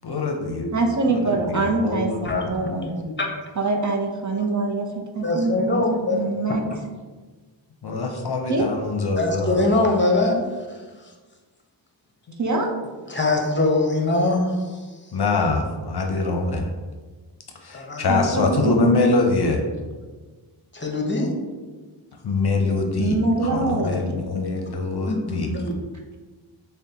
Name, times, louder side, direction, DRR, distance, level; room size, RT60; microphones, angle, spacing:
voice 1, 0.0-0.7 1.1-2.2 7.8-9.6 12.3-12.4 15.1-16.7 17.6-19.6 22.2-23.2 23.4-25.5, left 3 dB, 55° left, 3 dB, 0.6 m, -24 dB
voice 2, 0.7-2.9 3.6-4.9 5.1-5.8 6.1-6.6 8.5-8.7 12.4-12.7 18.1-19.0 23.0-24.2, right 3 dB, 40° right, 1 dB, 0.6 m, -24 dB
voice 3, 2.2-3.3 5.2-6.2 9.2-10.4 13.1-14.8 17.7-18.1 20.7-21.3 25.1-25.7, left 2 dB, 25° left, 0 dB, 0.9 m, -23 dB
6.4 x 2.2 x 2.8 m, 1.3 s
cardioid pair, 55°, 48 cm